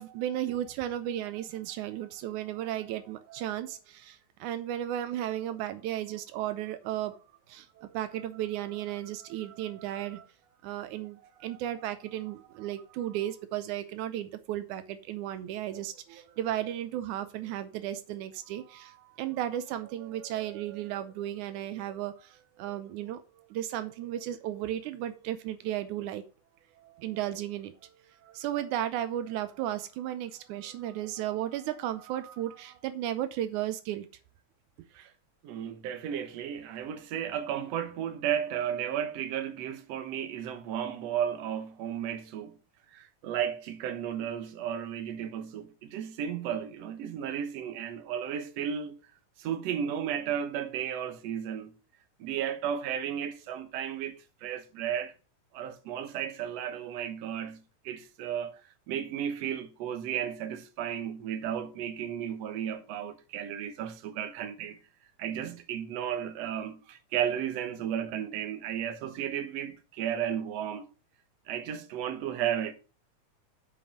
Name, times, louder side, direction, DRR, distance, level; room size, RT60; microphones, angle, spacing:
voice 1, 0.0-7.2 7.5-10.3 10.6-23.3 23.5-26.2 26.8-27.7 28.2-34.1, right 12 dB, 85° right, 2.2 m, -34 dB
voice 2, 35.4-42.5 42.9-48.9 49.4-51.7 52.2-55.1 55.5-58.6 58.9-64.8 65.2-70.9 71.5-72.7, right 9 dB, 65° right, 2.0 m, -34 dB
7.5 x 5.1 x 7.1 m
omnidirectional pair, 3.4 m